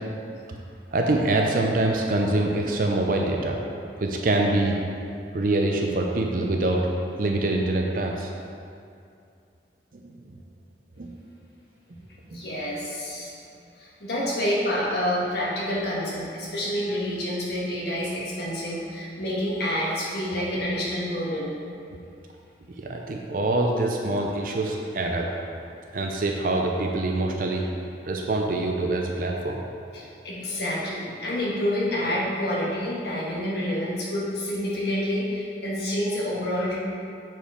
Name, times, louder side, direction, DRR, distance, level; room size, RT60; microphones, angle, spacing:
voice 1, 0.9-3.6 4.0-4.8 5.3-6.8 7.2-8.3 10.0-10.1 11.0-11.1 22.8-25.3 25.9-27.7 28.1-29.6, right 2 dB, 50° right, 1 dB, 0.5 m, -24 dB
voice 2, 12.3-13.3 13.8-21.5 29.9-36.8, equal, 65° left, -6 dB, 1.5 m, -28 dB
7.0 x 4.6 x 4.5 m, 2.5 s
head